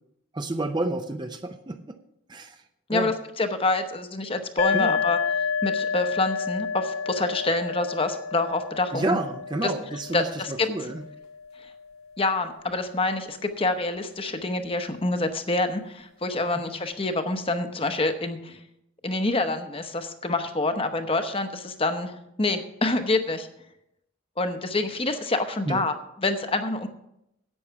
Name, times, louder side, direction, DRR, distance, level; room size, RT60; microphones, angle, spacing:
voice 1, 0.3-2.0 2.3-2.6 2.9-3.1 4.7-5.0 8.9-11.0 25.7-25.8, right 2 dB, 20° right, 7 dB, 0.5 m, -30 dB
voice 2, 2.9-5.2 5.6-9.2 9.6-9.7 10.1-10.7 12.2-18.6 19.0-23.5 24.4-26.9, left 2 dB, 25° left, 7 dB, 0.8 m, -27 dB
sound 1, 4.6-12.1, left 6 dB, 65° left, 0.4 m, -30 dB
11.0 x 8.5 x 5.7 m, 0.81 s
head